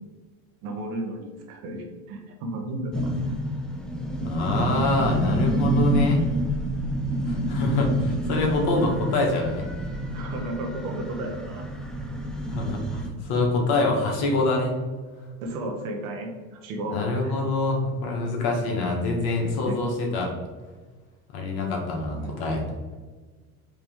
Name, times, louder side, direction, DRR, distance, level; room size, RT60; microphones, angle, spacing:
voice 1, 0.6-3.3 10.1-11.7 15.4-17.0 17.2-17.4 19.7-19.8 22.1-22.4, right 1 dB, 75° right, 2 dB, 1.2 m, -33 dB
sound 1, 2.9-13.1, right 1 dB, ahead, 0.5 m, -28 dB
voice 2, 4.2-6.2 7.3-9.6 12.5-14.8 16.9-20.3 21.3-22.6, left 3 dB, 60° left, 0 dB, 1.4 m, -25 dB
4.8 x 3.0 x 3.6 m, 1.4 s
hypercardioid pair, 90°, 43 cm